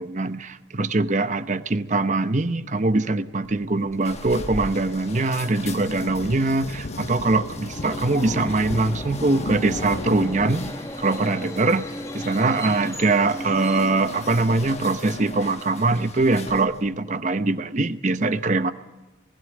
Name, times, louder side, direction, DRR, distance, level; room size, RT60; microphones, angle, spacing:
voice 1, 0.0-10.7 11.0-11.9 12.1-18.7, right 2 dB, 40° right, 12 dB, 0.8 m, -22 dB
sound 1, 3.4-16.9, left 3 dB, 35° left, 1.1 m, -40 dB
sound 2, 5.6-10.7, left 2 dB, 60° left, 0.8 m, -35 dB
Subway metro underground, 7.2-14.9, equal, 15° left, 1.3 m, -37 dB
19.5 x 16.0 x 9.2 m, 1.1 s
head